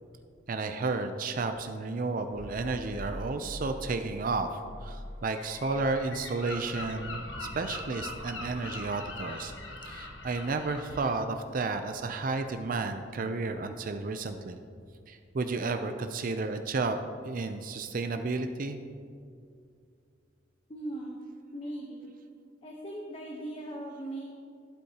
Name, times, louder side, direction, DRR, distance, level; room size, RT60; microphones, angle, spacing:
voice 1, 0.5-9.5 9.8-14.6 15.1-18.8, right 3 dB, 45° right, 7 dB, 0.4 m, -32 dB
sound 1, 2.3-18.3, left 1 dB, 55° left, 2.7 m, -49 dB
Gull seagull, 5.3-11.1, left 2 dB, 75° left, 1.2 m, -41 dB
voice 2, 20.7-21.2 21.5-22.1 22.6-24.3, right 1 dB, 30° left, -1 dB, 0.9 m, -39 dB
15.0 x 8.3 x 2.9 m, 2.3 s
head